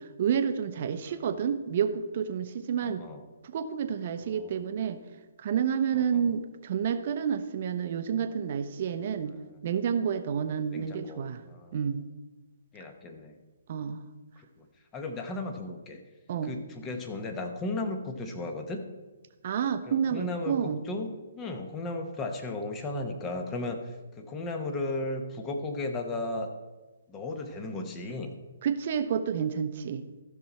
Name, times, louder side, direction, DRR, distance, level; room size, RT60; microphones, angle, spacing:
voice 1, 0.0-3.0 3.5-5.0 5.4-9.3 9.6-11.4 11.7-12.0 13.7-14.0 16.3-16.5 19.4-20.8 28.6-30.1, right 7 dB, 45° right, 9 dB, 0.8 m, -29 dB
voice 2, 2.8-3.2 4.2-4.6 5.9-6.4 10.7-11.8 12.7-13.4 14.4-14.7 14.9-16.0 16.4-18.8 19.9-26.5 27.1-28.4, left 2 dB, 20° left, 5 dB, 1.2 m, -35 dB
14.0 x 6.1 x 4.2 m, 1.2 s
figure-of-eight pair, 135°, 0 cm